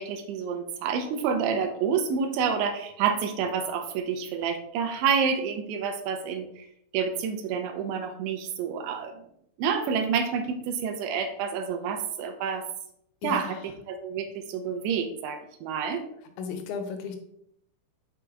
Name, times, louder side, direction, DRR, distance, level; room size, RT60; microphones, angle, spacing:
voice 1, 0.0-6.6 6.9-9.2 9.6-12.6 13.2-13.6 13.9-16.0, right 6 dB, 85° right, 7 dB, 3.0 m, -28 dB
voice 2, 13.2-13.7 16.4-17.2, left 5 dB, 80° left, 6 dB, 3.0 m, -35 dB
6.2 x 5.8 x 3.4 m, 0.73 s
omnidirectional pair, 5.2 m